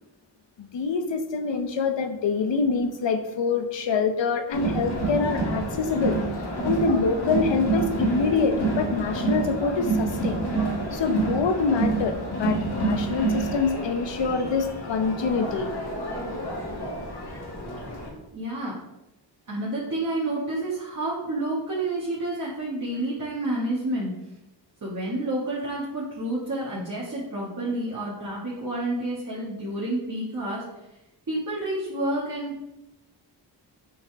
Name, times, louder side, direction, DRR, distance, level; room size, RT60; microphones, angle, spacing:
voice 1, 0.6-6.2 6.6-10.4 10.9-15.7, left 4 dB, 80° left, 7 dB, 0.9 m, -25 dB
Crowd, 4.5-18.1, right 2 dB, 65° left, 2.6 m, -28 dB
voice 2, 18.3-18.8 19.5-24.1 24.8-30.6 31.3-32.6, right 1 dB, 45° right, -7 dB, 2.1 m, -29 dB
7.7 x 5.6 x 3.5 m, 0.91 s
wide cardioid pair, 95°, 44 cm